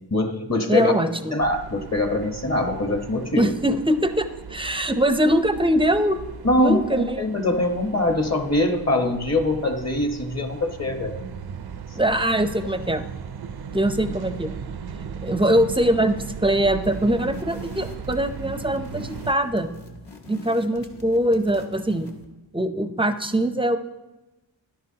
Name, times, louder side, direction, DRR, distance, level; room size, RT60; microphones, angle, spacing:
voice 1, 0.1-0.9 1.3-3.5 6.4-11.2, left 2 dB, 35° left, 5 dB, 1.2 m, -23 dB
voice 2, 0.7-1.4 3.4-6.2 6.6-7.2 11.9-13.0 13.7-14.5 15.2-19.7 20.3-22.1 22.5-23.8, right 1 dB, 10° right, 9 dB, 0.6 m, -22 dB
sound 1, 1.4-19.4, right 7 dB, 55° right, 0.5 m, -37 dB
sound 2, 16.8-22.3, left 2 dB, 60° left, 1.4 m, -44 dB
13.5 x 11.0 x 2.8 m, 1.0 s
wide cardioid pair, 85°, 45 cm